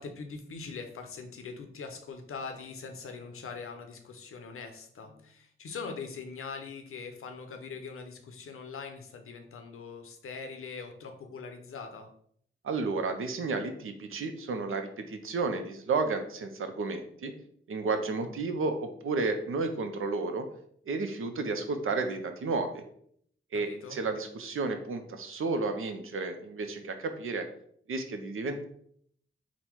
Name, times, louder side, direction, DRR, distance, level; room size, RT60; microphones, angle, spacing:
voice 1, 0.0-12.1 23.5-24.0, left 5 dB, 85° left, 5 dB, 0.6 m, -42 dB
voice 2, 12.6-17.3 17.7-20.5 20.9-22.8 23.5-27.5 27.9-28.6, right 3 dB, 75° right, 7 dB, 0.6 m, -32 dB
3.9 x 2.1 x 4.4 m, 0.65 s
cardioid pair, 50°, 21 cm